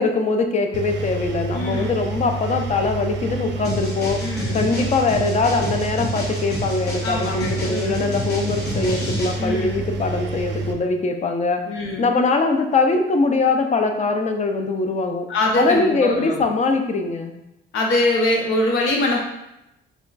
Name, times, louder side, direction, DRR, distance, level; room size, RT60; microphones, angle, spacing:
voice 1, 0.0-4.3 4.5-11.7 12.0-15.3 15.6-17.4, left 3 dB, 35° left, 5 dB, 0.5 m, -22 dB
Engine, 0.7-10.7, right 3 dB, 65° right, 0.5 m, -29 dB
voice 2, 1.5-1.9 4.2-4.7 7.0-8.1 9.4-9.8 11.7-12.1 15.3-16.4 17.7-19.2, left 1 dB, 85° left, 0 dB, 0.8 m, -23 dB
sound 1, 3.6-9.4, left 1 dB, 55° left, 1.2 m, -31 dB
3.4 x 2.2 x 3.9 m, 0.88 s
cardioid pair, 90°, 20 cm